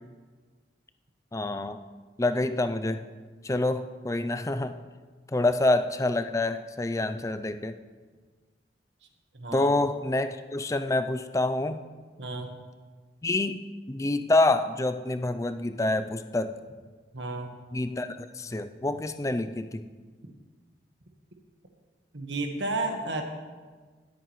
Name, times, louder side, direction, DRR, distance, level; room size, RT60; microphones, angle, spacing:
voice 1, 1.3-1.8 2.2-3.0 3.4-4.8 5.3-7.7 9.5-11.8 13.2-16.5 17.7-19.9, left 2 dB, 15° left, 10 dB, 0.4 m, -27 dB
voice 2, 9.3-9.7 12.2-12.6 17.1-17.5 22.1-23.2, right 2 dB, 85° right, 4 dB, 1.4 m, -32 dB
19.0 x 8.6 x 3.1 m, 1.5 s
head